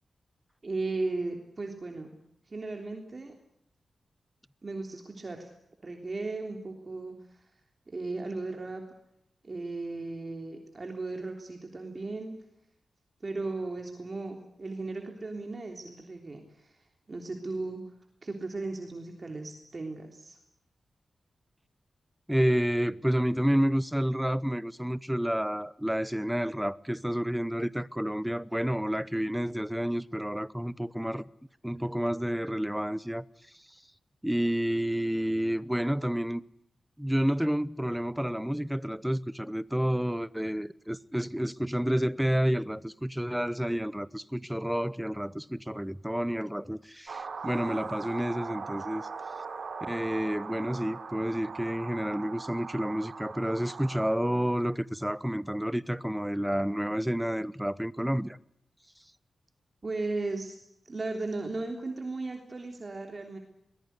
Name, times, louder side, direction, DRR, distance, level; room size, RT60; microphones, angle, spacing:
voice 1, 0.6-2.1 2.5-3.3 4.6-5.5 5.8-7.5 7.9-8.8 9.4-12.4 13.2-16.8 17.1-17.8 18.2-20.4 59.8-60.6 60.8-63.4, right 3 dB, 35° right, 3.4 m, -36 dB
voice 2, 22.3-31.3 31.6-33.2 33.5-33.6 34.2-36.4 37.0-49.1 49.8-58.4, equal, 5° right, 0.8 m, -30 dB
sound 1, 47.1-54.2, right 5 dB, 60° right, 3.9 m, -40 dB
22.5 x 20.0 x 8.2 m
wide cardioid pair, 115°, 0 cm